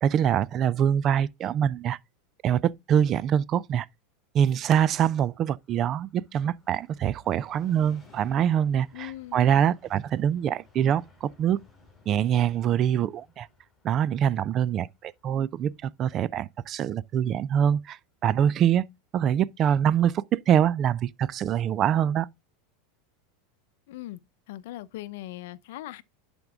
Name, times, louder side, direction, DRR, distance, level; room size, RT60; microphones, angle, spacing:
voice 1, 0.0-2.0 2.4-3.9 4.3-11.6 12.1-13.5 13.8-18.8 19.1-22.3, right 9 dB, 35° right, 0.4 m, -24 dB
Train, 4.5-17.8 18.2-18.3, left 3 dB, 10° left, 4.5 m, -59 dB
voice 2, 8.9-9.7 23.9-24.2 24.5-26.0, left 15 dB, 70° left, 0.7 m, -40 dB
11.0 x 5.3 x 3.5 m
supercardioid pair, 140°, 0 cm